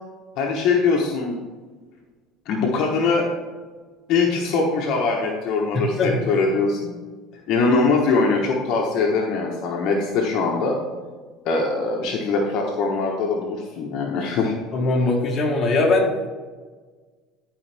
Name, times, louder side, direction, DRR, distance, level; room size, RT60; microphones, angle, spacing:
voice 1, 0.4-1.4 2.5-3.3 4.1-6.9 7.5-10.8 11.4-14.6, left 4 dB, 60° left, 0 dB, 1.2 m, -22 dB
voice 2, 5.7-6.3 14.7-16.1, left 2 dB, 30° left, -1 dB, 1.8 m, -21 dB
12.0 x 5.0 x 3.5 m, 1.4 s
cardioid pair, 130°, 0 cm